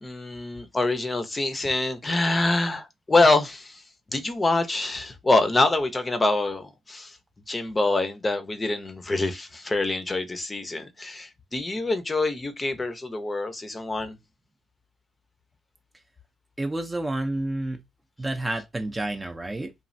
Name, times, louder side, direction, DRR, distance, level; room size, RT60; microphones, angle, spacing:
voice 1, 0.0-3.8 4.1-7.2 7.5-14.2, left 2 dB, 25° left, 0.6 m, -25 dB
voice 2, 16.6-17.8 18.2-19.7, right 1 dB, 20° right, 0.5 m, -29 dB
3.1 x 2.3 x 2.5 m
cardioid pair, 90°, 0 cm